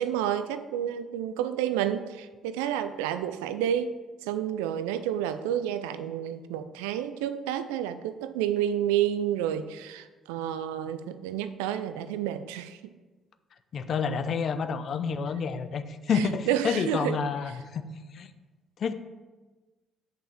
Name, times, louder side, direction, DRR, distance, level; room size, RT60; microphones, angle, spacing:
voice 1, 0.0-12.8 16.1-17.2, right 10 dB, 80° right, 11 dB, 0.4 m, -30 dB
voice 2, 13.7-17.8 18.1-18.3 18.8-18.9, left 6 dB, 55° left, 11 dB, 0.7 m, -29 dB
6.8 x 5.8 x 7.1 m, 1.3 s
hypercardioid pair, 45°, 0 cm